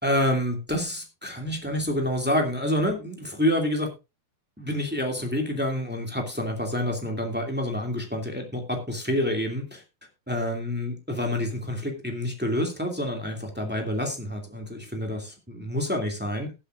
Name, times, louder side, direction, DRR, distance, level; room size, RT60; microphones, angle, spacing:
voice 1, 0.0-3.9 4.6-9.8 10.3-16.5, left 1 dB, 5° right, 2 dB, 1.4 m, -28 dB
19.5 x 8.0 x 2.5 m, 0.26 s
omnidirectional pair, 4.5 m